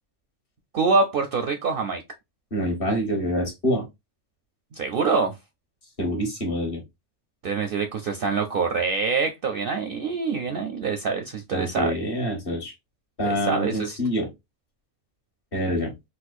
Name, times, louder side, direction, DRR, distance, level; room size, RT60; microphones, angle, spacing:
voice 1, 0.7-2.0 4.7-5.3 7.4-12.0 13.2-14.0, right 4 dB, 60° right, 0.6 m, -25 dB
voice 2, 2.5-3.8 6.0-6.8 11.5-12.7 13.2-14.3 15.5-15.9, equal, 50° left, 1.4 m, -26 dB
4.1 x 2.1 x 2.4 m
omnidirectional pair, 1.3 m